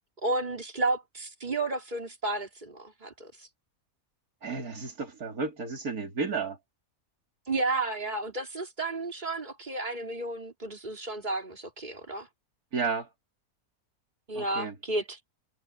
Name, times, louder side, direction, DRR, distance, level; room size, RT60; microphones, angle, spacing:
voice 1, 0.2-3.5 7.5-12.3 14.3-15.2, right 2 dB, 30° right, 3.4 m, -32 dB
voice 2, 4.4-6.6 12.7-13.1 14.3-14.7, right 4 dB, 90° right, 3.2 m, -32 dB
omnidirectional pair, 1.5 m